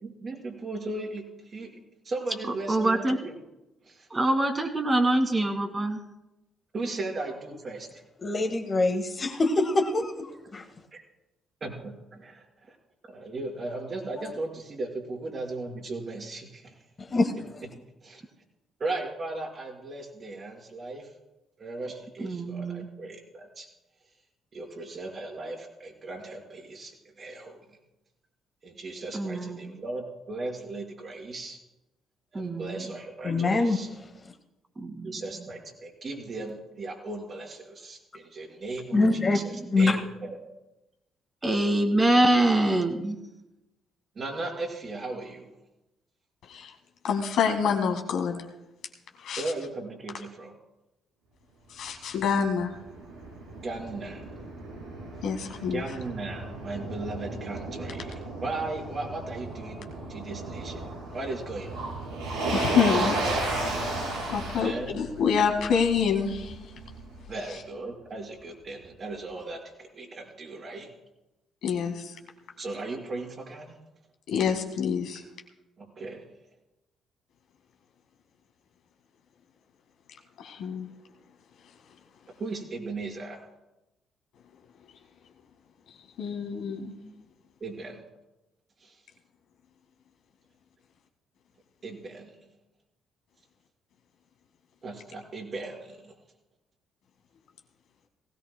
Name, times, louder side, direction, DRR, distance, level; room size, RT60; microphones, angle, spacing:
voice 1, 0.0-1.2 1.5-1.7 2.0-3.3 3.8-4.1 6.7-7.9 10.9-11.0 11.6-11.9 13.1-16.7 18.0-18.2 18.8-21.1 21.6-23.7 24.5-27.6 28.6-31.6 32.3-33.9 35.0-40.4 44.1-45.6 49.4-50.5 53.6-54.3 55.5-61.8 64.5-65.0 67.3-70.9 72.6-73.8 75.8-76.3 82.4-83.5 87.6-88.0 88.8-88.9 91.8-92.4 94.8-96.1, right 2 dB, 45° right, -1 dB, 4.4 m, -37 dB
voice 2, 2.7-3.2 4.1-6.0 22.2-22.9 29.1-29.8 32.3-32.9 34.8-35.2 38.9-39.7 41.4-43.2, right 1 dB, 25° right, 4 dB, 2.2 m, -25 dB
voice 3, 8.2-10.6 17.1-17.6 33.2-33.8 38.9-39.4 39.7-39.9, left 3 dB, 35° left, 4 dB, 1.6 m, -24 dB
voice 4, 47.0-48.4 49.2-49.4 51.7-52.7 55.2-55.8 62.5-63.7 64.3-66.6 71.6-72.1 74.3-75.2 80.4-80.9 86.2-87.0, left 6 dB, 70° left, 4 dB, 1.8 m, -27 dB
Motor vehicle (road), 52.2-67.2, right 2 dB, 90° right, 4.4 m, -34 dB
19.0 x 17.0 x 2.2 m, 0.98 s
hypercardioid pair, 50°, 0 cm